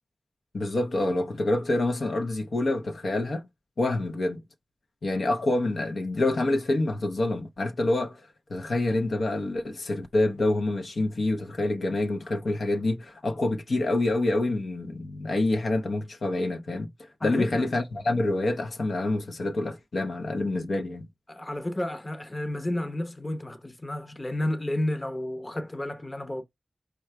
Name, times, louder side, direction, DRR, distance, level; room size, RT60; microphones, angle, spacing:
voice 1, 0.5-3.5 3.8-4.4 5.0-8.2 8.5-21.0, left 2 dB, 80° left, 0.7 m, -27 dB
voice 2, 17.2-17.7 21.3-26.4, left 1 dB, 25° left, 0.8 m, -31 dB
4.8 x 2.3 x 4.5 m
wide cardioid pair, 70°, 0 cm